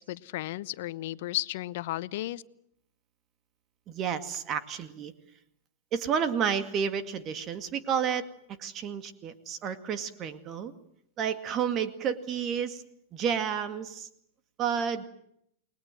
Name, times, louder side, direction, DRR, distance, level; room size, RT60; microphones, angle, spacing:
voice 1, 0.0-2.4, left 16 dB, 60° left, 17 dB, 1.0 m, -34 dB
voice 2, 3.9-5.1 5.9-8.3 8.6-10.7 11.2-12.8 13.1-14.1 14.6-15.1, right 7 dB, 35° right, 10 dB, 2.2 m, -30 dB
29.5 x 21.5 x 7.8 m, 0.72 s
hypercardioid pair, 105°, 0 cm